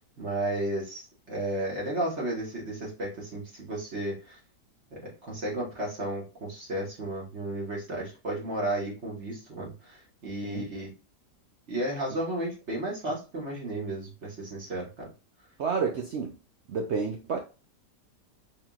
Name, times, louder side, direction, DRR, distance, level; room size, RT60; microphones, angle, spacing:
voice 1, 0.2-1.0 1.3-4.4 4.9-10.9 11.7-15.1, right 1 dB, 40° right, 1.9 m, -33 dB
voice 2, 15.6-16.3 16.7-17.4, right 5 dB, 75° right, 0.6 m, -30 dB
4.4 x 3.8 x 2.4 m
omnidirectional pair, 1.9 m